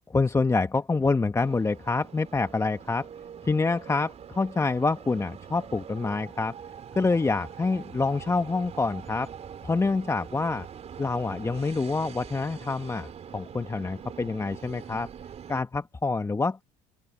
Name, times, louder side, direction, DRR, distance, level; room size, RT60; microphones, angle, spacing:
voice 1, 0.1-3.1 3.4-6.5 6.9-9.3 9.6-10.7 11.0-15.1 15.5-16.6, left 3 dB, 15° left, 1.2 m, -26 dB
sound 1, 1.4-15.6, right 8 dB, 40° right, 4.1 m, -44 dB
open air
hypercardioid pair, 80°, 17 cm